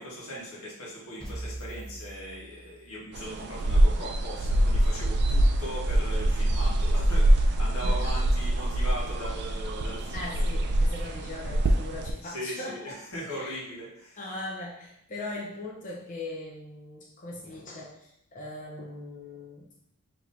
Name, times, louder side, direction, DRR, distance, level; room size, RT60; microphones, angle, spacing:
voice 1, 0.0-10.6 12.2-14.2, equal, 85° left, -5 dB, 1.4 m, -39 dB
sound 1, 1.2-3.2, right 1 dB, 5° left, 1.2 m, -41 dB
sound 2, 3.1-12.1, right 1 dB, 50° right, 0.4 m, -24 dB
voice 2, 7.8-8.2 10.1-12.8 13.3-13.6 14.2-19.8, left 2 dB, 35° left, -4 dB, 0.7 m, -40 dB
5.0 x 3.0 x 2.6 m, 0.76 s
head